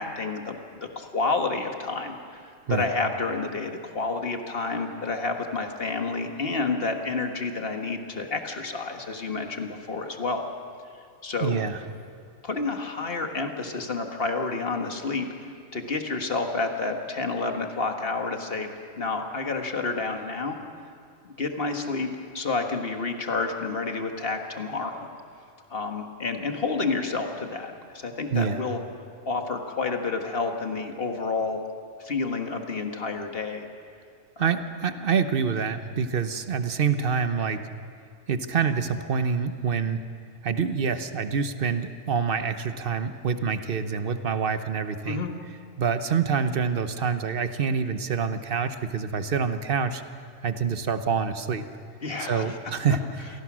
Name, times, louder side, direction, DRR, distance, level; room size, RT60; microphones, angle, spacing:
voice 1, 0.0-10.5 11.2-11.6 12.4-15.3 15.7-18.7 19.0-20.6 21.2-22.1 22.3-25.0 25.7-28.8 29.3-31.6 32.0-33.7 34.4-34.5 45.1-45.3 52.0-52.6, left 3 dB, 45° left, 4 dB, 1.8 m, -29 dB
voice 2, 11.4-11.8 28.3-28.6 34.4-37.6 38.3-40.0 40.4-45.2 45.8-50.0 50.4-51.6 52.2-53.0, right 6 dB, 45° right, 10 dB, 1.1 m, -26 dB
27.0 x 18.0 x 6.3 m, 2.3 s
omnidirectional pair, 1.4 m